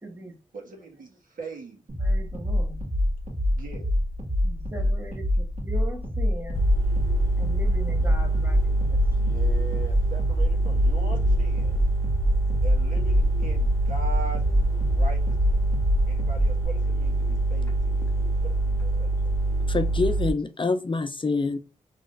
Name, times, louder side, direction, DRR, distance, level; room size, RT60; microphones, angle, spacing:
voice 1, 0.0-0.4 2.0-2.8 4.3-6.7 7.4-9.0, right 2 dB, 15° right, 1.4 m, -40 dB
voice 2, 0.5-1.8 3.5-3.9 9.1-11.8 12.6-14.4 14.7-15.6 16.1-18.1 18.4-19.2, right 3 dB, 80° right, 1.6 m, -40 dB
sound 1, 1.9-16.7, left 1 dB, 60° right, 1.9 m, -26 dB
sound 2, 6.5-20.3, right 2 dB, 20° left, 1.1 m, -25 dB
voice 3, 19.7-21.6, left 3 dB, 35° left, 0.5 m, -26 dB
3.7 x 3.2 x 2.5 m
cardioid pair, 55°, 14 cm